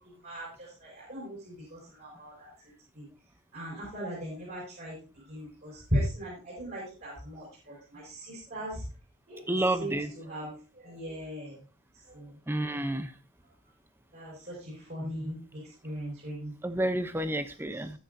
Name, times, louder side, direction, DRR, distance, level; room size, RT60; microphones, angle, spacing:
voice 1, 0.2-2.5 2.9-3.0 3.5-5.0 5.3-8.8 9.3-11.6 12.1-12.3 12.9-13.0 14.1-15.4 15.8-16.5, equal, 45° right, -5 dB, 5.9 m, -38 dB
voice 2, 9.5-10.1 12.5-13.1 15.0-15.3 16.6-17.9, right 1 dB, 10° right, 10 dB, 0.7 m, -30 dB
19.5 x 6.5 x 2.7 m, 0.36 s
head